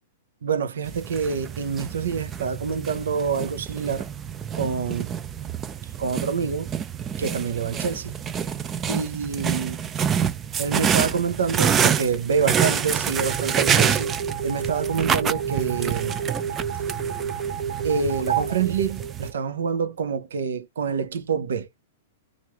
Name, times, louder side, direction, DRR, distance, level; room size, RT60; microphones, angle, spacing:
voice 1, 0.4-4.1 4.5-5.1 6.0-6.7 7.2-8.1 8.9-9.8 10.6-14.1 14.4-16.2 17.8-21.7, right 6 dB, 85° right, 0.6 m, -26 dB
sound 1, 0.8-19.3, right 8 dB, 20° right, 0.3 m, -27 dB
sound 2, 13.2-19.7, right 7 dB, 50° right, 1.7 m, -30 dB
3.0 x 2.5 x 2.9 m
hypercardioid pair, 145°, 0 cm